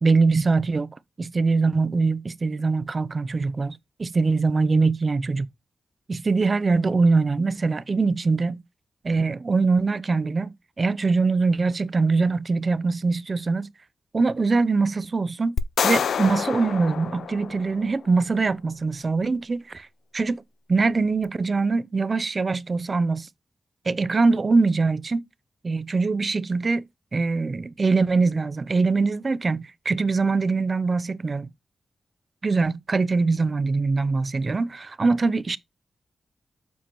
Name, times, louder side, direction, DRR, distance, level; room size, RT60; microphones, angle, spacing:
voice 1, 0.0-5.5 6.1-8.6 9.0-13.7 14.1-15.6 15.8-19.9 20.1-20.4 20.7-23.3 23.9-25.2 25.6-26.9 27.1-31.5 32.4-35.6, right 4 dB, 45° right, 0.5 m, -23 dB
sound 1, 15.6-18.0, left 7 dB, 85° left, 0.4 m, -27 dB
7.3 x 5.8 x 3.0 m
cardioid pair, 75°, 0 cm